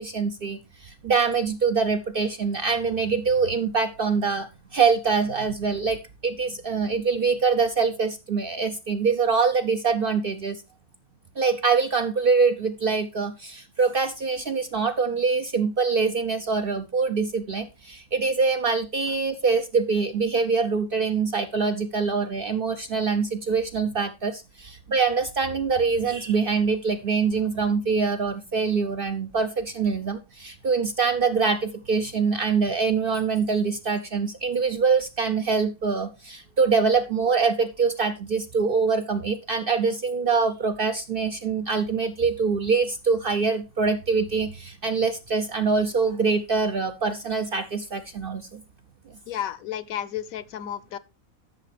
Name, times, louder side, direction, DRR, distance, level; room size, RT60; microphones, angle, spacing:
voice 1, 0.0-10.6 11.4-48.6, right 5 dB, 55° right, 0.7 m, -24 dB
voice 2, 49.3-51.0, left 10 dB, 70° left, 1.1 m, -32 dB
13.0 x 6.6 x 3.3 m
omnidirectional pair, 1.5 m